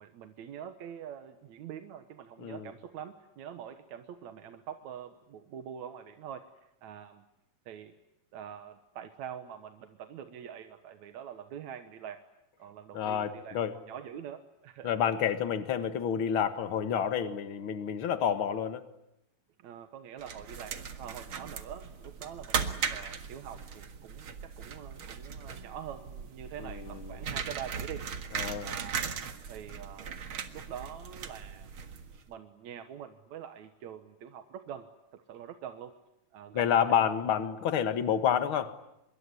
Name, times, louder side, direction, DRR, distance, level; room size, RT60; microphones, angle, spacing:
voice 1, 0.0-6.5 6.8-7.2 7.7-7.9 8.3-12.2 12.6-14.9 19.6-28.1 28.6-29.1 29.5-30.2 30.5-31.7 32.3-35.9 36.3-36.7, right 9 dB, 65° right, 8 dB, 2.4 m, -45 dB
voice 2, 2.4-2.7 12.9-13.8 14.8-18.8 26.6-27.2 28.3-28.8 36.5-38.8, left 8 dB, 45° left, 10 dB, 2.0 m, -29 dB
sound 1, 20.2-32.3, right 6 dB, 45° right, 2.0 m, -38 dB
25.5 x 22.5 x 9.9 m, 0.86 s
omnidirectional pair, 3.8 m